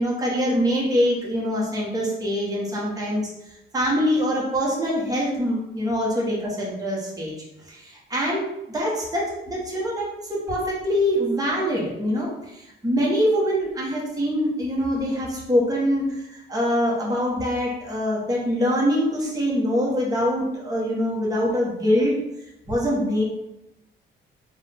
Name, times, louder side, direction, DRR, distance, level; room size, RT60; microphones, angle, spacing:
voice 1, 0.0-3.2 3.7-7.3 7.7-22.1 22.7-23.2, equal, 20° right, -4 dB, 1.4 m, -24 dB
3.8 x 2.7 x 3.6 m, 0.85 s
cardioid pair, 90°, 20 cm